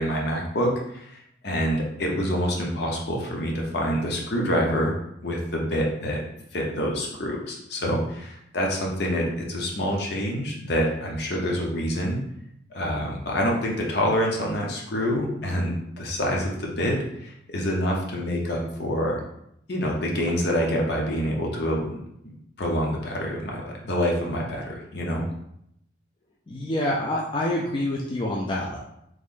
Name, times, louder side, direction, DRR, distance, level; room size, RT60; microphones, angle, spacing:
voice 1, 0.0-4.9 5.2-6.2 6.5-12.2 12.7-19.2 19.7-22.0 22.6-25.2, equal, 55° left, -1 dB, 0.7 m, -26 dB
voice 2, 26.5-28.8, left 1 dB, 25° left, -3 dB, 0.3 m, -27 dB
3.1 x 2.5 x 3.7 m, 0.76 s
head